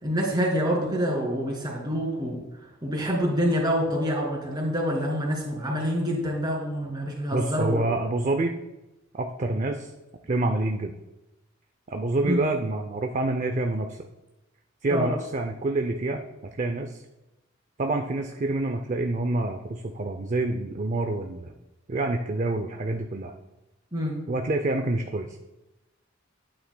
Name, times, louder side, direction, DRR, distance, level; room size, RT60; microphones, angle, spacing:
voice 1, 0.0-2.4 2.8-7.9 12.2-12.4 14.9-15.1 23.9-24.1, equal, 20° right, -2 dB, 2.5 m, -26 dB
voice 2, 7.3-8.5 9.1-9.9 10.3-10.9 11.9-14.0 14.8-16.2 16.6-17.0 17.8-21.5 21.9-23.3 24.3-25.3, right 2 dB, 35° right, 5 dB, 0.5 m, -27 dB
11.5 x 8.8 x 2.2 m, 1.0 s
head